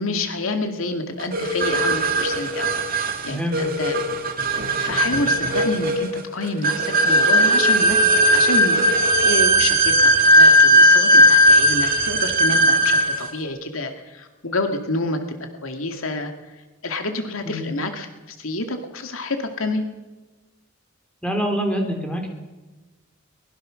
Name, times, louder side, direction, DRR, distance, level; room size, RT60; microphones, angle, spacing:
voice 1, 0.0-3.9 4.8-10.1 10.4-15.2 15.6-16.3 16.8-19.9, left 2 dB, 85° left, 5 dB, 2.3 m, -28 dB
sound 1, 1.3-13.3, equal, 45° right, 2.6 m, -17 dB
voice 2, 3.3-3.6 17.4-17.7 21.2-22.3, equal, 5° left, 3 dB, 3.7 m, -25 dB
22.5 x 21.0 x 6.5 m, 1.2 s
head